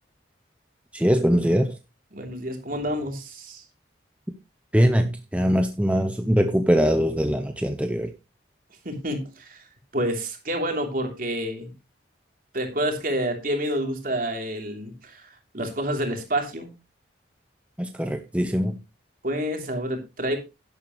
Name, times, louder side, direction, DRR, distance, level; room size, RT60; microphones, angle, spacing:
voice 1, 0.9-1.7 4.7-8.1 17.8-18.7, equal, 5° right, 6 dB, 0.8 m, -22 dB
voice 2, 2.1-3.6 8.8-9.6 9.9-11.7 12.5-16.8 19.2-20.4, right 1 dB, 50° right, 4 dB, 3.2 m, -28 dB
11.5 x 11.0 x 3.1 m, 0.26 s
head